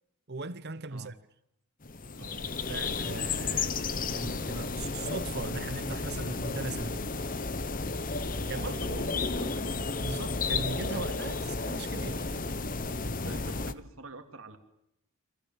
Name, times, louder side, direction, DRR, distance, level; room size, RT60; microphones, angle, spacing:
voice 1, 0.3-1.1 2.6-7.0 8.5-9.2 10.0-12.3, right 3 dB, 45° right, 0.9 m, -39 dB
sound 1, 1.8-13.7, left 3 dB, 40° left, 1.1 m, -33 dB
voice 2, 2.1-2.5 8.5-9.7 11.4-11.5 13.2-14.6, right 2 dB, 60° right, 2.8 m, -45 dB
29.0 x 24.0 x 7.4 m
head